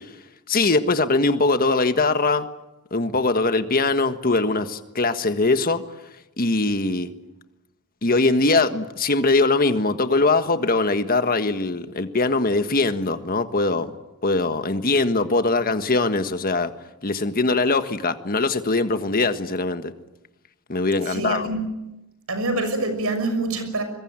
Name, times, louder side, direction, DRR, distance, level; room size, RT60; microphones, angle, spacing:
voice 1, 0.5-2.5 2.9-5.8 6.4-7.1 8.0-13.9 14.2-16.7 17.0-19.9 20.7-21.5, left 3 dB, 40° left, 1.5 m, -21 dB
voice 2, 21.1-21.7 22.3-23.8, right 2 dB, 70° right, 6.3 m, -25 dB
24.5 x 22.5 x 9.0 m
head